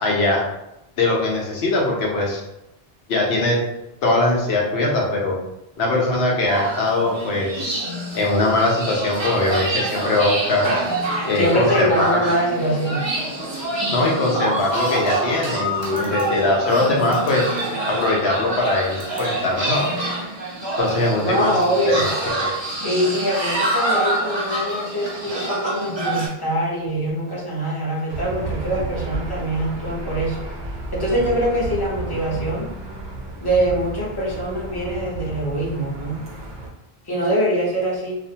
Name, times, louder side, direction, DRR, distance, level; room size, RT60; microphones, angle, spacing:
voice 1, 0.0-0.4 1.0-2.4 3.1-3.6 4.0-5.3 5.8-7.7 8.1-10.7 11.2-12.2 13.9-17.4 17.9-19.9 20.8-21.5 21.9-22.4, left 2 dB, 85° left, -1 dB, 0.9 m, -21 dB
sound 1, 6.5-26.3, right 1 dB, 30° right, 0.6 m, -26 dB
voice 2, 11.3-13.1 21.2-22.1 22.8-30.4 30.9-32.7 33.4-36.2 37.0-38.2, right 1 dB, 25° left, -6 dB, 0.7 m, -23 dB
Aircraft / Engine, 28.1-36.7, right 2 dB, 75° right, 0.8 m, -32 dB
2.5 x 2.1 x 2.7 m, 0.89 s
omnidirectional pair, 1.0 m